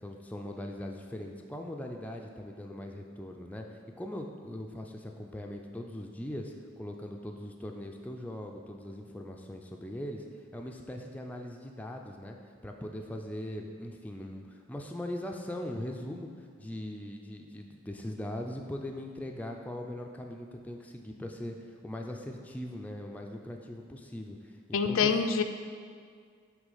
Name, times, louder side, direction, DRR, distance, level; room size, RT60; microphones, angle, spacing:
voice 1, 0.0-3.7 4.0-10.2 10.5-12.4 12.6-14.4 14.7-16.3 16.6-21.5 21.8-24.4 24.7-25.1, left 1 dB, 5° left, 2 dB, 0.4 m, -40 dB
voice 2, 24.7-25.4, left 5 dB, 75° left, 7 dB, 0.4 m, -25 dB
8.1 x 3.2 x 5.5 m, 2.1 s
head